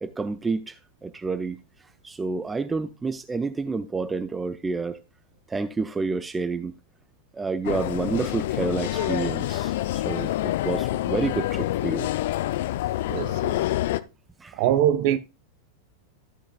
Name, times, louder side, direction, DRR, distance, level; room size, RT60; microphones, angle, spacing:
voice 1, 0.0-1.6 2.0-5.0 5.5-6.7 7.3-9.7 10.0-12.1 14.4-14.6, right 4 dB, 15° right, 0.5 m, -29 dB
sound 1, 7.6-14.0, left 15 dB, 55° left, 0.4 m, -27 dB
voice 2, 13.1-13.6 14.5-15.2, right 11 dB, 45° right, 0.8 m, -23 dB
13.0 x 7.0 x 2.3 m
figure-of-eight pair, 90°, 0 cm